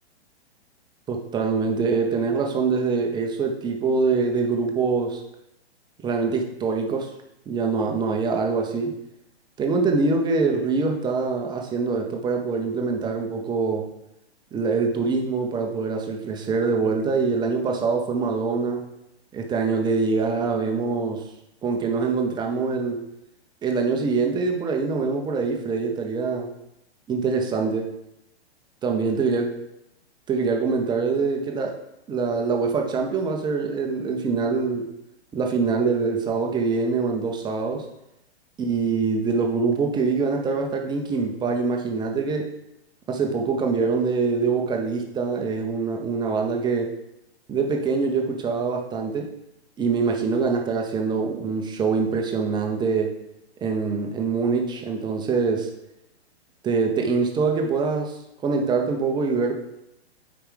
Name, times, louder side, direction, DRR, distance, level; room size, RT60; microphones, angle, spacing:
voice 1, 1.1-5.2 6.0-7.1 7.5-8.9 9.6-13.9 14.5-18.8 19.3-21.2 21.6-23.0 23.6-26.5 27.1-27.9 28.8-29.5 30.3-31.7 32.1-34.8 35.3-37.8 38.6-42.4 43.1-46.9 47.5-49.3 49.8-53.1 53.6-55.7 56.6-59.5, right 4 dB, 15° right, 2 dB, 0.7 m, -24 dB
6.8 x 4.9 x 3.8 m, 0.84 s
figure-of-eight pair, 120°, 33 cm